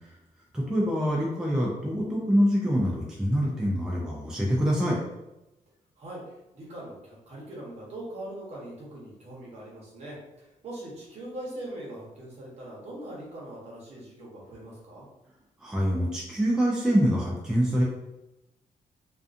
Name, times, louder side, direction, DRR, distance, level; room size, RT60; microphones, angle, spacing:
voice 1, 0.7-5.0 15.6-17.8, equal, 5° right, -4 dB, 0.3 m, -25 dB
voice 2, 6.0-15.1, right 1 dB, 50° right, -4 dB, 0.9 m, -41 dB
2.4 x 2.4 x 2.4 m, 0.94 s
wide cardioid pair, 175°, 14 cm